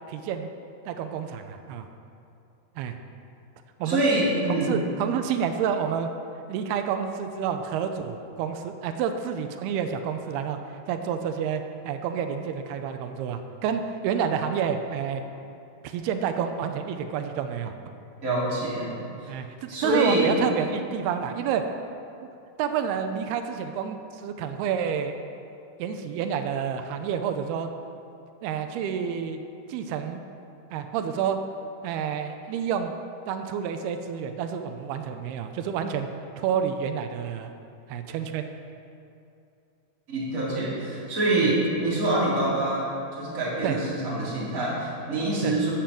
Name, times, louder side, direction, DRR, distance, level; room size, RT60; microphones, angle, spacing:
voice 1, 0.1-0.5 0.9-1.9 2.8-3.0 3.8-4.1 4.5-6.1 6.5-10.6 10.9-15.2 15.8-17.7 19.3-21.6 22.6-25.1 25.8-27.7 28.4-29.4 29.7-30.2 30.7-31.4 31.8-32.9 33.3-36.1 36.4-37.5 37.9-38.4 41.4-41.5 43.6-43.8 45.4-45.6, right 7 dB, 80° right, 7 dB, 2.6 m, -29 dB
voice 2, 3.9-4.9 18.2-18.9 19.7-20.3 40.1-45.7, right 1 dB, 20° right, -8 dB, 3.7 m, -25 dB
11.5 x 9.5 x 7.6 m, 2.6 s
omnidirectional pair, 4.8 m